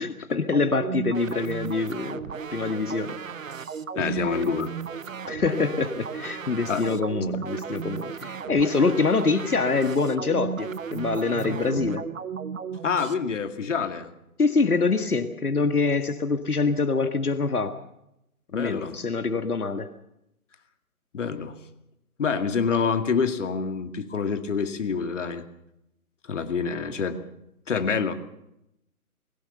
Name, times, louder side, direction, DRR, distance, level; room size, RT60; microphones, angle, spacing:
voice 1, 0.0-3.2 4.0-4.3 5.3-12.1 14.4-17.7 18.5-19.9, left 4 dB, 80° left, 9 dB, 1.7 m, -25 dB
sound 1, 0.5-13.1, right 7 dB, 60° right, 1.2 m, -35 dB
voice 2, 4.0-4.7 6.7-6.8 12.8-14.1 18.5-19.0 21.1-21.6 22.2-25.4 26.3-27.2 27.7-28.1, left 5 dB, 55° left, 8 dB, 2.3 m, -26 dB
21.5 x 18.0 x 6.8 m, 0.83 s
figure-of-eight pair, 140°, 44 cm